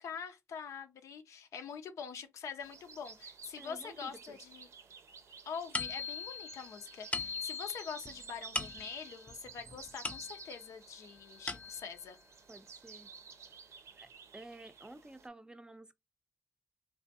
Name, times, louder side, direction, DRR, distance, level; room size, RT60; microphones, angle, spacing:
voice 1, 0.0-4.7 5.5-12.2, left 6 dB, 85° left, 0.5 m, -44 dB
sound 1, 2.6-15.3, right 6 dB, 70° right, 0.6 m, -53 dB
voice 2, 3.6-4.4 12.5-13.1 14.0-15.9, right 2 dB, 15° right, 0.4 m, -52 dB
sound 2, 5.7-10.7 11.2-12.1, left 4 dB, 25° left, 0.6 m, -41 dB
3.3 x 2.5 x 2.7 m
cardioid pair, 60°, 5 cm